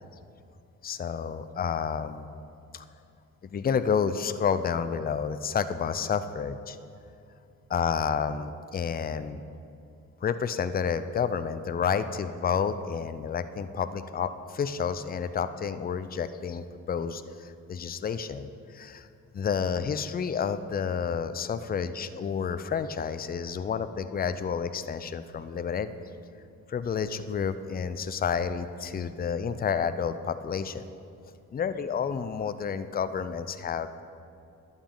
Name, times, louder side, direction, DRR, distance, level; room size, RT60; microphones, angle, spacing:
voice 1, 0.8-2.3 2.7-2.8 3.4-6.8 7.7-9.4 10.2-19.1 19.3-25.9 26.7-30.8 31.5-34.0, left 6 dB, 25° left, 12 dB, 0.4 m, -30 dB
11.0 x 7.1 x 3.8 m, 2.6 s
supercardioid pair, 60°, 35 cm